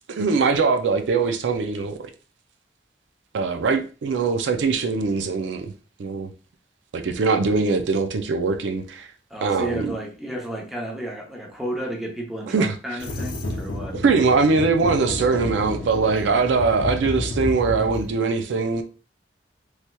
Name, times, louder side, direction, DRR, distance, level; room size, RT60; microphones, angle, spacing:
voice 1, 0.1-2.1 3.3-5.7 6.0-6.3 6.9-9.1 9.4-10.0 12.5-13.0 13.9-18.8, right 4 dB, 80° right, 0.4 m, -22 dB
voice 2, 9.3-14.0, right 1 dB, ahead, 0.6 m, -32 dB
sound 1, 13.0-18.1, left 1 dB, 55° left, 0.6 m, -31 dB
3.2 x 2.8 x 2.2 m
head